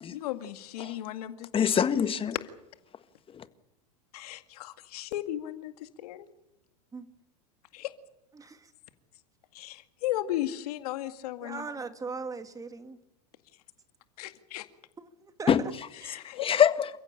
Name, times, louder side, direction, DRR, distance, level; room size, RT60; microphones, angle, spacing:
voice 1, 0.1-1.5 4.1-6.3 7.7-7.9 9.5-11.7 14.2-14.7 16.0-16.5, left 13 dB, 70° left, 2.1 m, -35 dB
voice 2, 1.5-2.3 3.3-3.4 15.5-16.9, left 8 dB, 25° left, 1.7 m, -25 dB
voice 3, 11.4-13.0 15.2-15.5, right 4 dB, 15° right, 2.0 m, -38 dB
28.5 x 15.5 x 8.8 m
hypercardioid pair, 100°, 21 cm